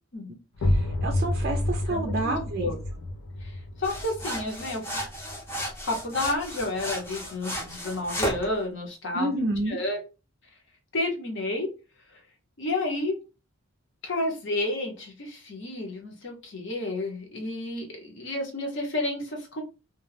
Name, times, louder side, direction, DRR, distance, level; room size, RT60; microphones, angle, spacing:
sound 1, 0.5-6.1, left 1 dB, 85° left, 0.5 m, -30 dB
voice 1, 0.7-2.7 9.1-9.8, right 2 dB, 45° right, 2 dB, 0.4 m, -29 dB
voice 2, 1.9-2.8 3.4-5.0 5.8-9.3 9.7-10.0 10.9-11.7 12.1-12.2 12.6-13.2 14.0-19.6, left 2 dB, 55° left, 1 dB, 0.8 m, -31 dB
sound 2, 3.8-8.5, equal, 10° left, 0.5 m, -34 dB
2.3 x 2.1 x 3.2 m, 0.31 s
head